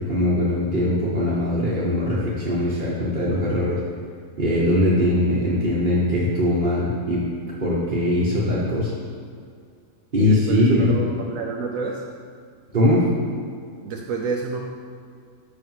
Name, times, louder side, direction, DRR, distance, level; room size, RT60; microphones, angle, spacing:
voice 1, 0.0-3.8 4.4-7.2 7.6-8.9 10.1-11.0 12.7-13.1, left 1 dB, 40° right, -7 dB, 1.2 m, -21 dB
voice 2, 10.1-12.1 13.8-14.6, right 4 dB, 85° right, 0 dB, 1.1 m, -28 dB
6.6 x 5.0 x 5.5 m, 2.2 s
omnidirectional pair, 1.4 m